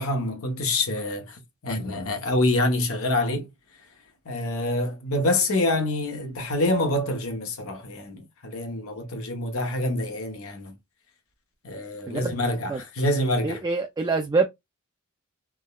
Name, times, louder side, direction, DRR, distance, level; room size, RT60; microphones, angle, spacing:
voice 1, 0.0-3.5 4.2-10.8 11.6-13.6, left 1 dB, 65° left, 0.9 m, -26 dB
voice 2, 13.4-14.5, right 4 dB, 20° right, 0.3 m, -25 dB
3.5 x 2.1 x 2.3 m
head